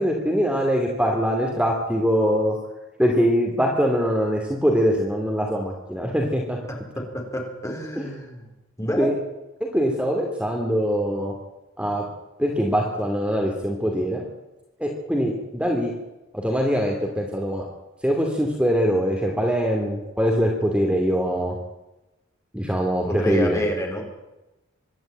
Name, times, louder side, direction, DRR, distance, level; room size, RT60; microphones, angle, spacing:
voice 1, 0.0-2.6 3.0-6.6 8.0-8.1 9.0-9.2 9.7-11.3 11.8-12.0 12.4-14.2 14.8-15.9 16.3-17.7 18.0-21.5 22.5-23.6, equal, 5° right, 1 dB, 2.5 m, -23 dB
voice 2, 7.1-8.5 8.8-9.1 23.0-24.0, equal, 15° left, 1 dB, 4.4 m, -28 dB
24.5 x 12.0 x 8.9 m, 1.0 s
head